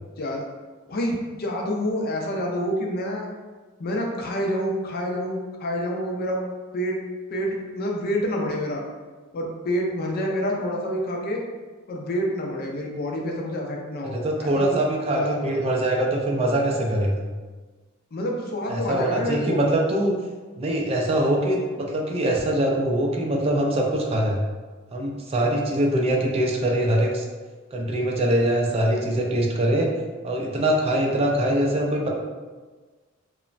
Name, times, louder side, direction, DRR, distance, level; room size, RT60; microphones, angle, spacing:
voice 1, 0.9-3.3 3.8-6.4 6.7-7.0 7.3-8.8 9.3-11.4 11.9-14.8 15.1-15.7 18.1-19.7, equal, 45° left, 0 dB, 0.4 m, -27 dB
voice 2, 14.0-17.2 18.7-20.1 20.6-24.4 24.9-27.2 27.7-29.9 30.2-32.1, right 1 dB, 30° right, -1 dB, 0.3 m, -23 dB
2.9 x 2.1 x 2.5 m, 1.4 s
head